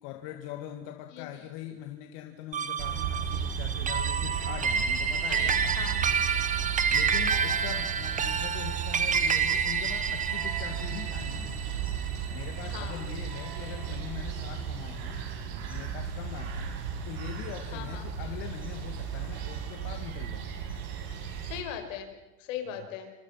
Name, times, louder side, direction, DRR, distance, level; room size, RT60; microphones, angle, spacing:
voice 1, 0.0-6.1 6.9-11.6 12.3-15.2 15.7-16.7 17.0-20.5 22.7-22.9, left 12 dB, 65° left, 4 dB, 2.3 m, -42 dB
voice 2, 1.1-1.4 5.3-6.2 7.2-7.5 12.7-13.1 17.7-18.1 21.5-23.1, left 9 dB, 90° left, 6 dB, 5.2 m, -40 dB
sound 1, 2.5-13.1, right 6 dB, 20° right, 1.3 m, -29 dB
sound 2, 2.8-21.6, right 8 dB, 70° right, 5.3 m, -35 dB
sound 3, 3.6-21.6, right 2 dB, 5° left, 7.5 m, -57 dB
27.5 x 26.0 x 5.9 m, 1.1 s
supercardioid pair, 145°, 37 cm